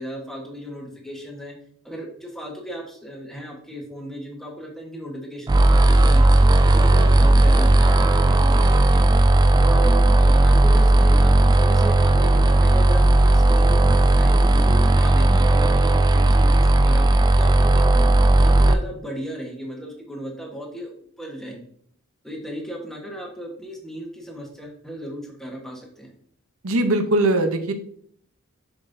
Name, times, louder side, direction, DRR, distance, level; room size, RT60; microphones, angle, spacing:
voice 1, 0.0-1.5 1.8-6.3 6.7-9.0 9.6-13.9 14.2-17.9 18.3-21.6 22.2-26.1, equal, ahead, -1 dB, 1.2 m, -35 dB
sound 1, 5.5-18.7, right 2 dB, 20° right, 0.3 m, -15 dB
voice 2, 26.6-27.7, right 2 dB, 80° right, 8 dB, 0.8 m, -20 dB
7.1 x 6.1 x 2.7 m, 0.62 s
head